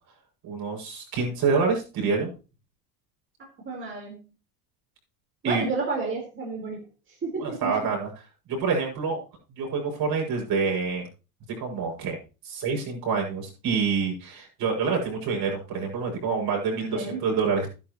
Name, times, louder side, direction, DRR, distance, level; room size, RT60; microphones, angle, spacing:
voice 1, 0.4-2.3 5.4-5.6 7.4-8.1 8.5-9.2 9.5-11.1 11.6-12.2 12.4-17.7, right 5 dB, 55° right, 0 dB, 6.8 m, -27 dB
voice 2, 3.6-4.2 5.4-6.8 7.2-7.7 16.9-17.3, right 4 dB, 25° right, -2 dB, 4.3 m, -30 dB
12.0 x 11.0 x 3.1 m, 0.32 s
supercardioid pair, 95°, 45 cm